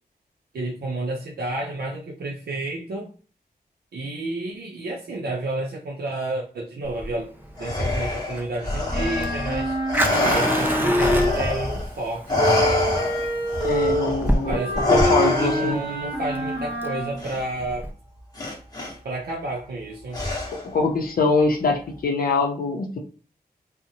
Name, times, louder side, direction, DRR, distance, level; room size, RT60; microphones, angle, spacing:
voice 1, 0.5-3.1 3.9-7.3 7.6-9.8 10.2-12.5 14.5-17.9 19.0-20.2, right 2 dB, 85° right, -2 dB, 0.5 m, -30 dB
Fire, 6.8-17.9, right 1 dB, 10° right, 0.3 m, -29 dB
Respiratory sounds, 7.6-11.9 12.3-15.9 17.2-17.4 18.4-18.9 20.1-20.8, left 2 dB, 25° left, 0.7 m, -26 dB
Wind instrument woodwind instrument, 8.9-11.8 12.4-17.2, equal, 30° right, 0.8 m, -26 dB
voice 2, 13.6-14.6 14.9-15.8 20.5-23.0, left 3 dB, 65° left, 2 dB, 0.5 m, -23 dB
2.6 x 2.0 x 2.7 m, 0.39 s
wide cardioid pair, 135°, 16 cm